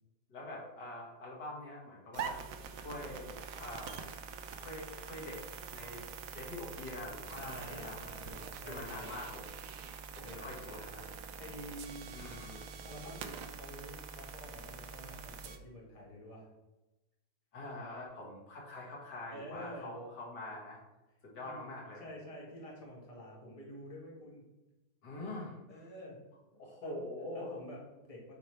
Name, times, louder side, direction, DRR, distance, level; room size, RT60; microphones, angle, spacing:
voice 1, 0.3-2.4 2.8-3.3 3.6-4.1 4.6-5.4 5.7-6.1 6.3-8.2 8.6-9.5 10.1-11.1 12.1-12.7 17.5-20.8 21.2-22.1 25.0-25.8 26.6-27.5, left 1 dB, 85° left, -3 dB, 2.3 m, -44 dB
sound 1, 2.1-15.6, right 6 dB, 65° right, 0.9 m, -45 dB
voice 2, 7.4-9.3 10.2-11.0 11.4-12.1 12.8-16.5 19.3-19.9 21.4-21.6 22.0-24.4 25.7-26.2 26.5-28.4, equal, 20° left, -4 dB, 1.7 m, -49 dB
8.2 x 4.3 x 3.2 m, 1.0 s
omnidirectional pair, 1.8 m